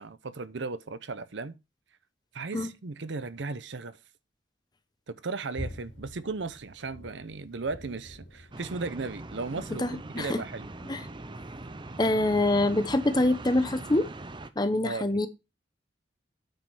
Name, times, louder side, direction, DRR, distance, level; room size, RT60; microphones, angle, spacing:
voice 1, 0.0-1.6 2.3-4.0 5.1-10.7 14.8-15.1, right 3 dB, 70° right, 0.7 m, -36 dB
sound 1, 5.5-13.9 14.1-14.3, equal, 65° left, 3.1 m, -48 dB
sound 2, 8.5-14.5, right 2 dB, 25° right, 0.6 m, -41 dB
voice 2, 9.8-10.4 10.9-11.0 12.0-14.1 14.6-15.3, left 1 dB, 20° left, 0.9 m, -25 dB
9.1 x 5.2 x 5.5 m
head